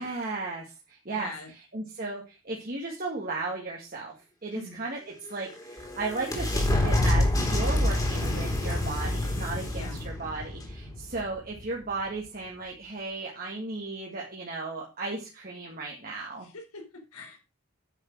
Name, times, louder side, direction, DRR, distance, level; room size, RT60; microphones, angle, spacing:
voice 1, 0.0-1.3 1.7-4.1 4.4-16.5, right 3 dB, 40° right, -1 dB, 2.1 m, -35 dB
voice 2, 1.1-1.5 4.5-4.8 9.7-10.0 16.3-17.4, left 2 dB, 90° left, 2 dB, 4.2 m, -42 dB
sound 1, 5.2-11.6, left 1 dB, 15° left, 2.9 m, -27 dB
9.2 x 6.6 x 6.1 m, 0.30 s
head